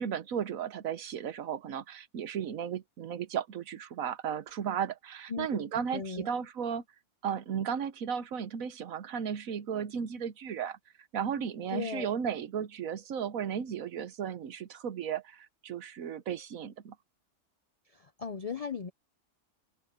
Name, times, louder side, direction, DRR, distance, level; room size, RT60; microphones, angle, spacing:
voice 1, 0.0-6.8 7.2-10.8 11.1-16.9, right 8 dB, 65° right, 1.3 m, -35 dB
voice 2, 5.3-5.6 5.9-6.3 11.7-12.1 17.9-18.9, left 5 dB, 80° left, 0.3 m, -37 dB
omnidirectional pair, 1.6 m